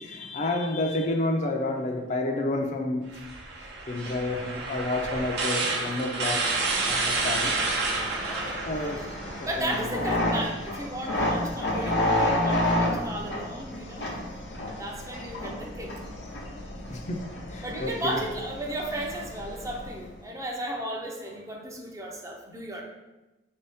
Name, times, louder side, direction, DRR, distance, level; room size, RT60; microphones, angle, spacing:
voice 1, 0.0-3.1 3.9-6.5 6.9-7.5 8.7-9.0 9.6-9.7 16.9-17.2 17.5-18.2, left 2 dB, 45° left, 2 dB, 0.5 m, -29 dB
sound 1, 3.1-9.6, right 3 dB, 70° right, 0.7 m, -30 dB
sound 2, 6.4-20.1, left 1 dB, 90° left, 0.9 m, -31 dB
voice 2, 8.2-8.7 9.4-14.1 14.7-16.0 17.6-22.8, right 1 dB, 20° right, 0 dB, 0.5 m, -35 dB
4.4 x 2.7 x 3.4 m, 1.1 s
head